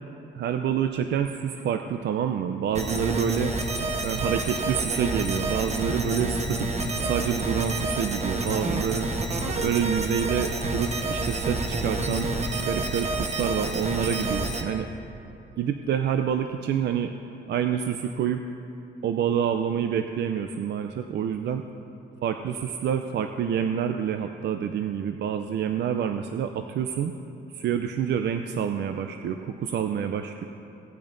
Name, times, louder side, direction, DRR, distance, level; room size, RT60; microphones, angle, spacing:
voice 1, 0.3-3.5 4.0-9.1 9.6-12.3 12.7-14.9 15.6-17.1 17.5-18.4 19.0-21.6 22.2-27.1 27.5-30.4, right 8 dB, 60° right, 7 dB, 0.5 m, -27 dB
sound 1, 2.7-14.6, right 2 dB, 35° right, 1.1 m, -28 dB
17.5 x 8.7 x 2.6 m, 2.9 s
cardioid pair, 90°, 20 cm